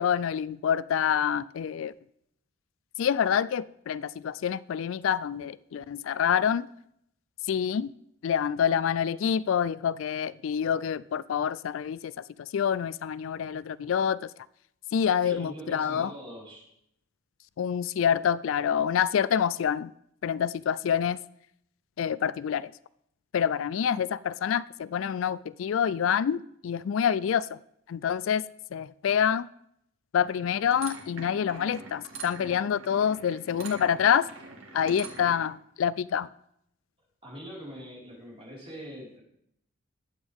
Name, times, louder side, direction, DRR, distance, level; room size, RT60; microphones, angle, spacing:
voice 1, 0.0-1.9 3.0-6.7 7.5-7.9 8.2-12.1 12.4-14.5 14.9-16.1 17.6-19.9 20.2-21.2 22.0-22.7 23.3-27.6 27.9-28.4 28.7-29.5 30.1-34.3 34.7-36.3, left 8 dB, 70° left, 0.3 m, -27 dB
voice 2, 15.2-16.6 37.2-39.2, equal, 25° right, 4.7 m, -42 dB
Grinding Gears and Steady Clinking, 30.2-35.5, right 4 dB, 80° right, 2.2 m, -44 dB
21.0 x 8.0 x 3.6 m
head